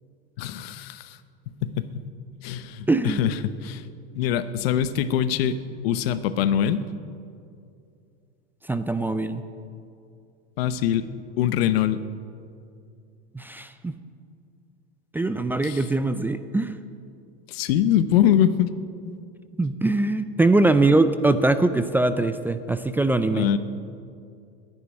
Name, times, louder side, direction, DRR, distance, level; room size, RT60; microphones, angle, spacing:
voice 1, 0.4-1.2 1.6-2.0 2.4-3.8 4.1-6.8 10.6-11.1 11.4-12.0 15.6-15.8 17.5-18.7 23.3-23.6, left 10 dB, 80° left, 13 dB, 0.9 m, -23 dB
voice 2, 2.9-3.2 8.7-9.4 13.3-13.9 15.1-16.7 19.6-23.5, right 2 dB, 5° right, 11 dB, 0.4 m, -22 dB
11.0 x 10.0 x 9.9 m, 2.4 s
supercardioid pair, 125°, 30 cm